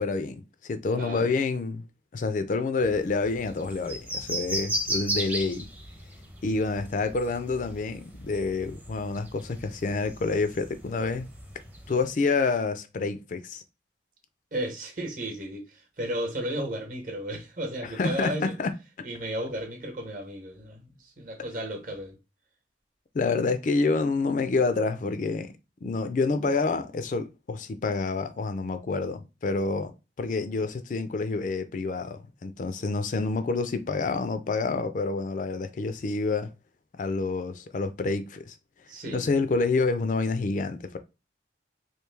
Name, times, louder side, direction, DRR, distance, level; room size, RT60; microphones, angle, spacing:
voice 1, 0.0-1.8 2.1-5.7 6.4-11.3 11.9-13.6 17.8-18.7 23.1-25.5 25.8-36.5 36.9-38.5 39.1-41.0, left 3 dB, 45° left, 0.3 m, -28 dB
voice 2, 1.0-1.3 14.5-18.5 19.0-22.1 38.9-39.2, right 1 dB, 45° right, 0.9 m, -34 dB
sound 1, 2.8-12.1, right 1 dB, 10° right, 0.6 m, -36 dB
3.1 x 2.6 x 3.3 m
head